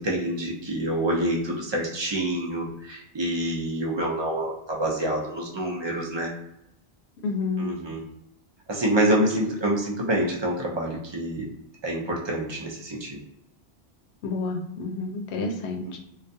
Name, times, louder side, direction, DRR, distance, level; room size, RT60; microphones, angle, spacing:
voice 1, 0.0-6.3 7.6-8.0 8.7-11.5 11.8-13.2, right 1 dB, 45° right, -2 dB, 0.3 m, -27 dB
voice 2, 7.2-7.7 14.2-16.0, left 3 dB, 75° left, 2 dB, 0.8 m, -29 dB
2.3 x 2.3 x 2.6 m, 0.80 s
omnidirectional pair, 1.1 m